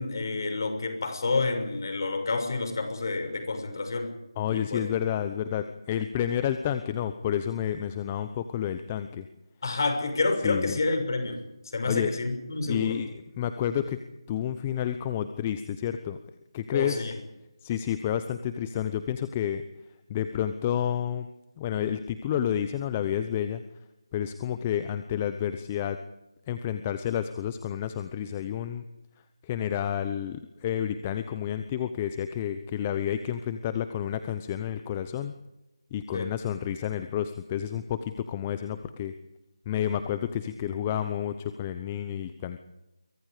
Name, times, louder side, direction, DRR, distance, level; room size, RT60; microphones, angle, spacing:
voice 1, 0.0-4.1 4.5-4.8 9.6-12.9 16.7-17.2 36.1-36.3, left 3 dB, 45° left, 7 dB, 6.3 m, -29 dB
voice 2, 4.4-9.3 10.4-10.8 11.8-12.1 12.6-14.0 14.3-16.2 16.5-17.1 17.6-19.7 20.1-21.3 21.6-23.6 24.1-26.0 26.5-28.8 29.4-35.3 35.9-39.1 39.7-42.6, left 10 dB, 15° left, 10 dB, 0.8 m, -30 dB
29.0 x 24.0 x 5.1 m, 0.96 s
figure-of-eight pair, 170°, 3 cm